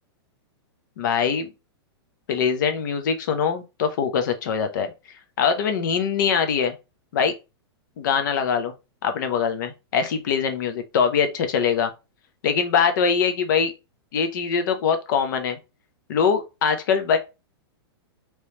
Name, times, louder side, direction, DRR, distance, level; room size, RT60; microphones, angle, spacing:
voice 1, 1.0-1.5 2.3-4.9 5.4-6.7 7.1-7.3 8.0-8.7 9.0-11.9 12.4-13.7 14.1-15.6 16.1-17.2, left 6 dB, 45° left, 0.7 m, -22 dB
3.1 x 2.8 x 3.2 m
supercardioid pair, 175°, 14 cm